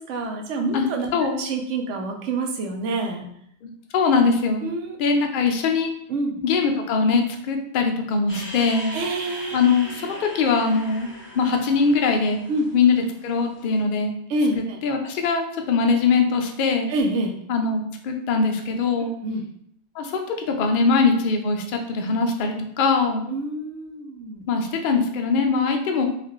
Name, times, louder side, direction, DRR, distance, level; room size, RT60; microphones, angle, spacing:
voice 1, 0.0-1.1 1.4-3.3 4.6-5.0 6.1-6.4 8.9-9.6 9.8-10.0 12.5-12.7 14.3-14.8 16.9-17.3 19.2-19.4 23.3-24.4, right 2 dB, 85° right, 3 dB, 1.0 m, -27 dB
voice 2, 3.6-4.6 5.0-5.9 6.4-9.0 9.5-11.1 11.3-12.4 12.7-14.1 14.8-16.9 17.5-19.1 20.0-23.2 24.5-26.1, left 4 dB, 60° left, 3 dB, 0.6 m, -22 dB
sound 1, 8.3-13.7, equal, 10° left, 0.7 m, -40 dB
4.1 x 2.5 x 3.0 m, 0.70 s
omnidirectional pair, 1.2 m